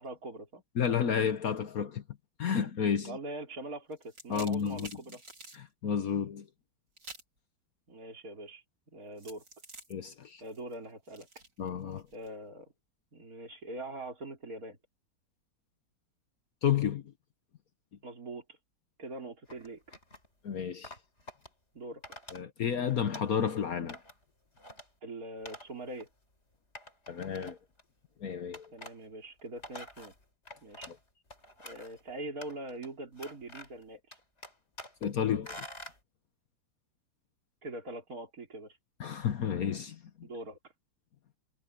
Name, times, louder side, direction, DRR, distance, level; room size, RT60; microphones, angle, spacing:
voice 1, 0.0-0.6 3.0-5.2 7.9-9.4 10.4-11.3 12.1-12.7 13.1-14.8 18.0-18.6 19.0-19.8 21.7-22.0 25.0-26.1 28.7-30.1 30.6-30.9 31.6-34.2 37.6-38.8 40.2-40.6, right 2 dB, 55° right, 4.3 m, -43 dB
voice 2, 0.8-2.0 2.4-3.2 4.3-4.9 5.5-6.5 9.9-10.4 11.6-12.0 16.6-17.0 20.4-20.9 22.3-24.0 27.1-27.6 28.2-28.6 30.9-31.0 35.0-35.7 39.0-40.0, left 8 dB, 60° left, 1.4 m, -31 dB
sound 1, 3.9-5.6 7.0-7.4 9.2-12.3, right 2 dB, 85° right, 5.7 m, -50 dB
sound 2, 19.5-20.3 20.8-21.5 22.0-22.4 22.7-23.5 23.9-24.2 24.6-24.9 25.5-25.7 26.0-26.1 26.7-27.8 28.5-29.0 29.4-31.0 31.3-32.0 32.4-32.9 33.2-33.8 34.1-35.1 35.4-36.0, left 1 dB, 40° left, 5.1 m, -47 dB
omnidirectional pair, 1.9 m